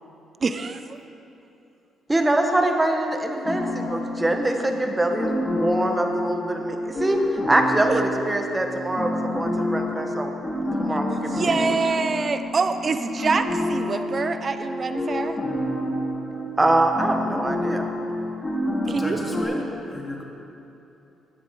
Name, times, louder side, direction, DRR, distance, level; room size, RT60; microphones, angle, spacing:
voice 1, 0.4-1.0 7.9-8.0 11.1-15.4 18.9-19.2, right 4 dB, 40° right, 9 dB, 0.7 m, -26 dB
voice 2, 2.1-10.3 10.6-11.8 16.6-17.8, right 1 dB, 15° right, 4 dB, 1.3 m, -24 dB
sound 1, 3.4-19.4, left 1 dB, 25° left, 2.6 m, -28 dB
voice 3, 18.8-20.2, left 1 dB, 10° left, -1 dB, 2.3 m, -33 dB
16.0 x 9.3 x 4.8 m, 2.9 s
cardioid pair, 90°, 0 cm